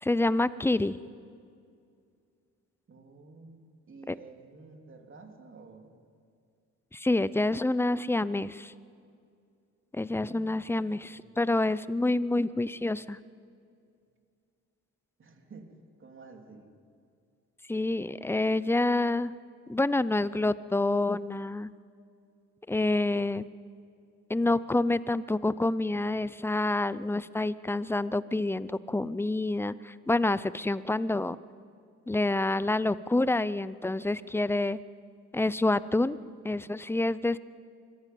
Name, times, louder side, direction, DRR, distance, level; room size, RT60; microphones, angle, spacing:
voice 1, 0.0-1.0 4.1-4.2 6.9-8.7 9.9-13.2 17.7-19.3 19.7-21.7 22.7-23.5 24.3-31.4 32.1-34.8 35.3-36.2 36.4-37.4, left 2 dB, 10° left, 17 dB, 0.6 m, -27 dB
voice 2, 2.9-6.0 10.1-11.4 15.2-15.7 16.0-16.7, right 3 dB, 40° right, 3 dB, 3.2 m, -51 dB
24.5 x 15.5 x 9.3 m, 2.3 s
cardioid pair, 90°, 30 cm